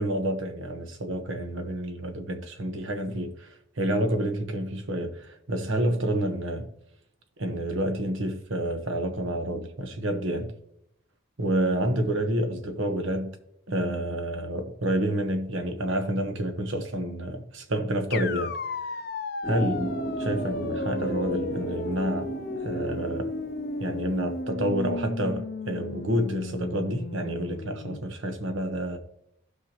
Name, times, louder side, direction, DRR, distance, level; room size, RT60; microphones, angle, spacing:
voice 1, 0.0-3.5 3.8-6.7 7.4-10.5 11.4-13.4 13.7-18.5 19.4-22.3 22.6-23.3 23.8-29.0, right 1 dB, 75° right, 1.2 m, -29 dB
sound 1, 18.1-28.0, left 3 dB, 50° left, 0.5 m, -35 dB
sound 2, 19.4-24.4, right 2 dB, 5° left, 1.2 m, -35 dB
16.0 x 5.7 x 3.0 m
head